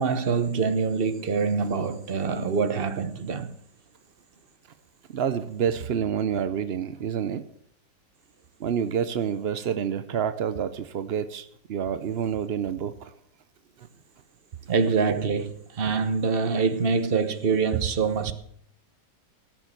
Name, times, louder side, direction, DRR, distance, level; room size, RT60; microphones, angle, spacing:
voice 1, 0.0-3.5 14.7-18.3, right 5 dB, 40° right, 1.0 m, -25 dB
voice 2, 5.1-7.4 8.6-13.1 17.7-17.8, right 8 dB, 70° right, 0.6 m, -28 dB
17.0 x 6.7 x 7.5 m
omnidirectional pair, 1.9 m